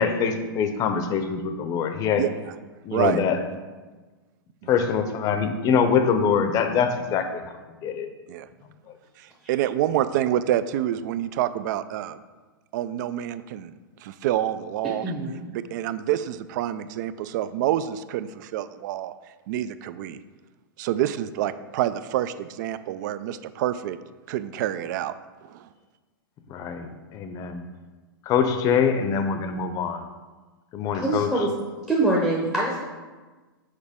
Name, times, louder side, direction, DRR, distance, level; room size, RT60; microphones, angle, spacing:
voice 1, 0.0-2.3 2.8-3.4 4.7-7.4 7.8-8.1 26.5-27.6 28.3-30.1 30.7-31.3, left 6 dB, 30° left, 8 dB, 0.6 m, -24 dB
voice 2, 2.9-3.2 4.6-4.7 8.3-8.5 9.2-12.2 12.7-13.7 14.0-15.0 15.5-19.1 19.5-20.2 20.8-24.0 24.3-25.1 25.4-25.7, right 12 dB, 50° right, 14 dB, 0.4 m, -27 dB
voice 3, 15.0-15.4 30.9-31.5 31.9-32.8, right 2 dB, 5° right, -4 dB, 0.8 m, -24 dB
6.4 x 4.8 x 3.6 m, 1.3 s
hypercardioid pair, 130°, 12 cm